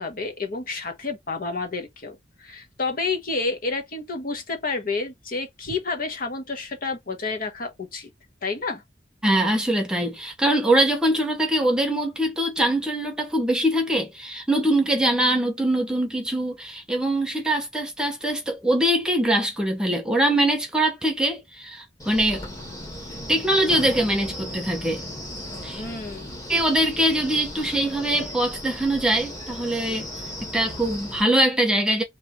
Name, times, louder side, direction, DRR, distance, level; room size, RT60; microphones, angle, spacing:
voice 1, 0.0-8.1 8.4-8.8 25.8-26.4, left 3 dB, 50° left, 1.0 m, -30 dB
voice 2, 9.2-22.4 23.3-25.0 25.6-25.8 26.5-30.1 30.5-32.0, right 1 dB, 5° right, 0.9 m, -23 dB
Wind, 22.0-31.2, left 1 dB, 20° left, 1.4 m, -36 dB
3.3 x 2.9 x 4.4 m
head